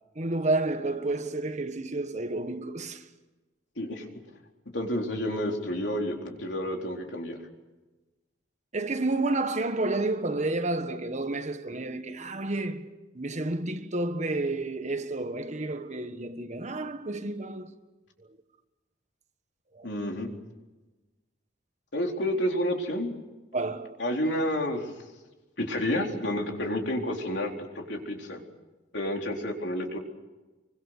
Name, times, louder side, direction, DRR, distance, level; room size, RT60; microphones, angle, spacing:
voice 1, 0.1-3.0 8.7-12.9 13.1-17.7 18.2-18.4 19.7-19.9 23.5-24.0, right 2 dB, 40° right, 1.5 m, -30 dB
voice 2, 4.7-7.4 19.8-20.3 21.9-23.2 24.0-24.9 25.6-28.4 28.9-30.0, left 1 dB, 70° left, 4.1 m, -30 dB
26.5 x 24.5 x 6.7 m
head